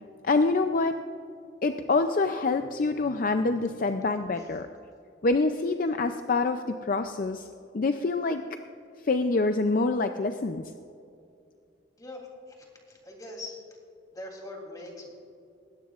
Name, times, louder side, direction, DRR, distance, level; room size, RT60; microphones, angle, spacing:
voice 1, 0.2-0.9 1.6-4.7 5.2-7.5 7.7-8.4 9.1-10.7, left 3 dB, 45° left, 7 dB, 0.4 m, -26 dB
voice 2, 12.0-13.6 14.1-15.1, left 2 dB, 20° left, 0 dB, 3.1 m, -42 dB
19.5 x 16.5 x 2.5 m, 2.5 s
head